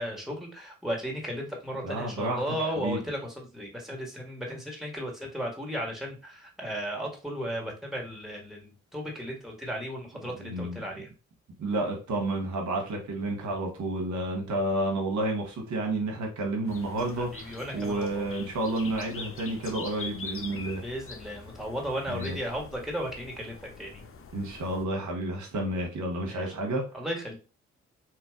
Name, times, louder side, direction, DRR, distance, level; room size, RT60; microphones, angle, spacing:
voice 1, 0.0-11.1 17.2-18.4 20.8-24.0 26.3-26.5 26.9-27.3, equal, ahead, 1.6 m, -35 dB
voice 2, 1.8-2.4 2.8-3.0 10.4-10.8 11.6-20.8 22.1-22.4 24.3-26.9, right 2 dB, 70° right, 1.1 m, -30 dB
sound 1, 16.7-24.9, left 4 dB, 45° left, 0.8 m, -44 dB
2.9 x 2.5 x 3.6 m
supercardioid pair, 45°, 31 cm